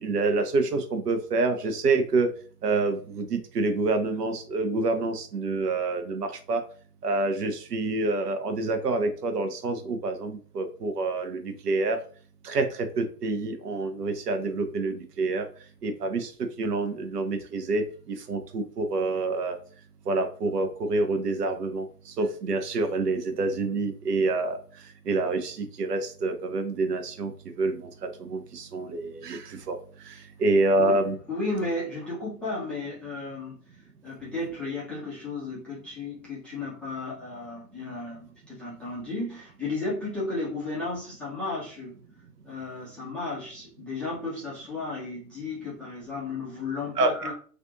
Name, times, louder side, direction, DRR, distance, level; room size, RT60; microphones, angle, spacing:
voice 1, 0.0-2.3 2.6-6.6 7.0-12.0 12.4-15.5 15.8-16.3 16.6-19.6 20.1-24.6 25.1-31.2 47.0-47.1, right 3 dB, 75° right, 6 dB, 0.7 m, -27 dB
voice 2, 31.3-33.6 34.0-41.9 42.4-47.3, left 2 dB, 5° left, -9 dB, 0.4 m, -34 dB
2.5 x 2.4 x 2.5 m, 0.42 s
figure-of-eight pair, 95°, 48 cm